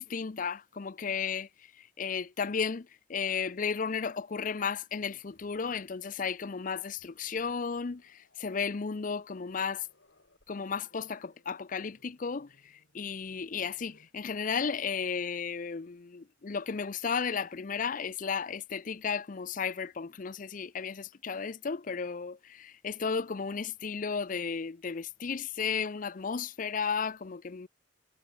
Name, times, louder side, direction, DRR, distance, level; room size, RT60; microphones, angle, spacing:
voice 1, 0.0-1.5 1.8-9.9 10.5-27.7, left 6 dB, 45° left, 0.5 m, -34 dB
Growling, 5.2-14.2 15.6-15.8 16.2-17.4, left 2 dB, 65° left, 3.6 m, -68 dB
head